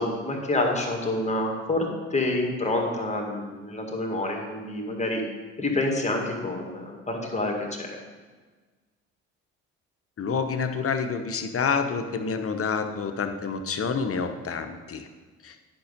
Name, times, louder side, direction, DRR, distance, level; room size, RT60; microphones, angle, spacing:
voice 1, 0.0-5.2 5.6-8.0, left 2 dB, 15° left, 1 dB, 2.0 m, -28 dB
voice 2, 10.2-15.1 15.4-15.6, left 5 dB, 35° left, 7 dB, 0.9 m, -28 dB
10.5 x 5.4 x 5.3 m, 1.4 s
figure-of-eight pair, 45°, 39 cm